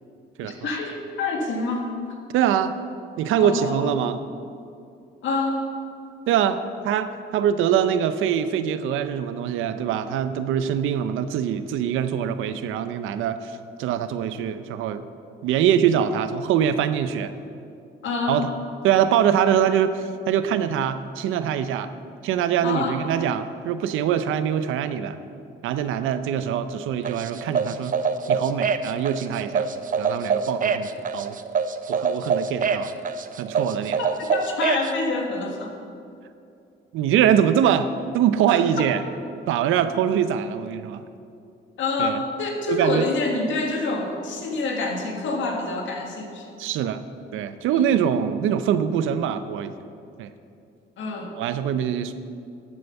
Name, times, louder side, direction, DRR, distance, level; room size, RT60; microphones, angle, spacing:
voice 1, 0.4-1.9 3.4-3.8 5.2-5.6 18.0-18.4 22.6-23.0 34.0-35.7 38.5-38.6 41.8-46.5 47.7-47.8 51.0-51.3, left 3 dB, 75° left, 1 dB, 1.8 m, -27 dB
voice 2, 2.3-2.7 3.2-4.2 6.3-13.5 13.8-15.0 15.4-17.3 18.3-18.5 18.8-21.9 22.2-25.2 25.6-28.0 28.3-29.7 30.0-30.9 31.1-31.4 31.9-32.9 33.4-34.0 36.9-39.0 39.5-41.0 42.0-42.2 42.7-43.1 46.6-47.0 47.3-49.7 50.2-50.3 51.4-52.1, right 9 dB, 90° right, 11 dB, 0.6 m, -23 dB
sound 1, 27.0-34.9, right 6 dB, 45° right, 0.6 m, -25 dB
12.5 x 7.9 x 5.4 m, 2.5 s
cardioid pair, 90°, 20 cm